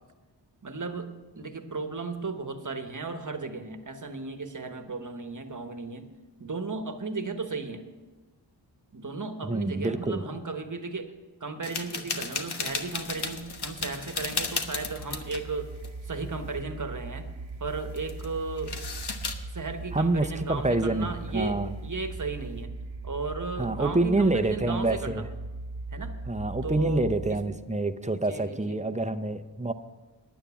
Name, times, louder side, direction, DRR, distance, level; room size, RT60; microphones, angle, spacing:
voice 1, 0.6-6.1 6.4-7.8 8.9-11.1 11.4-15.7 16.0-17.3 17.6-18.7 19.5-22.7 23.0-25.3 25.9-26.2 26.6-27.4 28.1-29.0, right 4 dB, 45° right, 7 dB, 1.1 m, -35 dB
voice 2, 9.4-10.2 19.9-21.7 23.6-25.3 26.3-29.7, right 2 dB, 15° right, 9 dB, 0.6 m, -27 dB
sound 1, 11.6-15.5 15.8-15.9 16.3-16.6 17.7-18.3 18.6-19.4, left 4 dB, 60° left, 1.1 m, -34 dB
sound 2, 12.9-27.6, right 3 dB, 80° right, 0.9 m, -40 dB
10.5 x 9.1 x 7.1 m, 1.2 s
wide cardioid pair, 60°, 44 cm